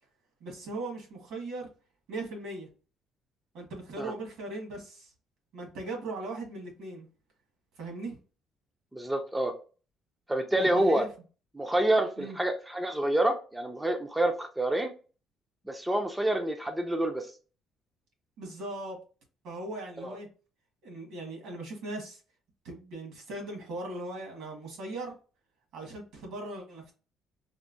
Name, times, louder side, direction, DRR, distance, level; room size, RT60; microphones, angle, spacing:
voice 1, 0.4-1.7 2.1-2.7 3.5-5.1 5.5-7.1 7.8-8.2 10.6-11.1 12.2-12.4 18.4-19.0 19.4-20.3 20.8-22.2 22.6-25.1 25.7-26.9, right 2 dB, 70° right, 1 dB, 1.4 m, -39 dB
voice 2, 8.9-9.5 10.3-11.0 11.6-14.9 15.7-17.3 20.0-20.2, right 1 dB, 5° right, 4 dB, 0.4 m, -27 dB
4.3 x 2.0 x 2.5 m, 0.36 s
cardioid pair, 155°, 0 cm